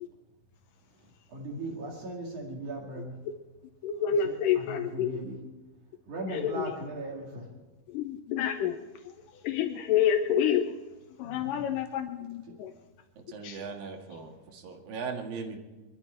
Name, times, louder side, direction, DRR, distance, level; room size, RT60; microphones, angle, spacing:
voice 1, 1.3-3.2 4.0-5.4 6.1-7.5 11.2-11.8 12.5-12.6, right 1 dB, 60° right, -1 dB, 3.5 m, -38 dB
voice 2, 3.8-5.2 6.3-6.7 7.9-8.8 9.4-10.8 11.2-12.7 13.4-13.6, left 8 dB, 80° left, 6 dB, 2.3 m, -28 dB
voice 3, 13.2-15.6, right 5 dB, 80° right, 2 dB, 3.6 m, -39 dB
23.5 x 13.5 x 4.5 m, 1.1 s
omnidirectional pair, 4.0 m